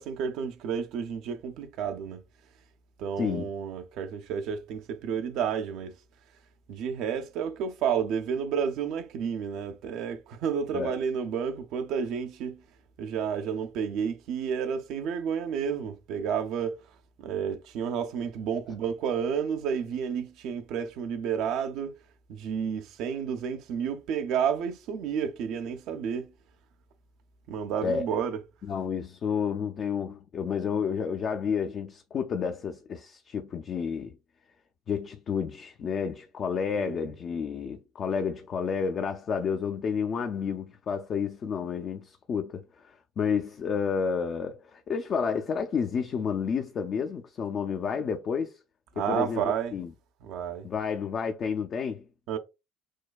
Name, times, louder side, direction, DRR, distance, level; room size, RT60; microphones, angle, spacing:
voice 1, 0.0-2.2 3.0-5.9 6.7-12.6 13.0-16.8 17.2-21.9 22.3-26.3 27.5-28.4 36.8-37.0 49.0-49.8 50.2-50.7 52.3-52.4, right 7 dB, 65° right, 0.6 m, -31 dB
voice 2, 3.2-3.5 10.7-11.0 27.8-28.1 28.6-34.2 34.9-48.6 49.0-49.4 49.7-49.9 50.6-52.0, left 6 dB, 45° left, 0.5 m, -30 dB
6.2 x 2.2 x 2.3 m
hypercardioid pair, 65°, 0 cm